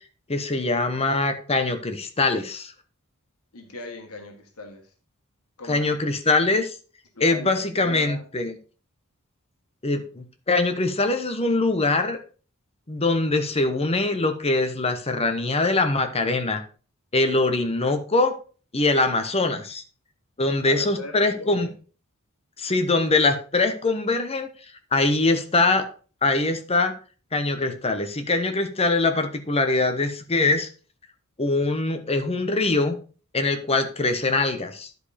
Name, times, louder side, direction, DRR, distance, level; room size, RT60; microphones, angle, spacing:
voice 1, 0.3-2.7 5.7-6.8 7.2-8.6 9.8-12.2 12.9-16.6 17.1-18.3 18.7-19.8 20.4-21.7 22.6-24.5 24.9-25.9 26.2-26.9 27.3-30.7 31.4-33.0 33.3-34.9, left 3 dB, 30° left, 8 dB, 1.0 m, -23 dB
voice 2, 3.5-4.9 5.6-5.9 7.1-8.2 20.6-21.7, left 2 dB, 85° left, 3 dB, 1.6 m, -38 dB
11.0 x 5.1 x 4.2 m, 0.38 s
head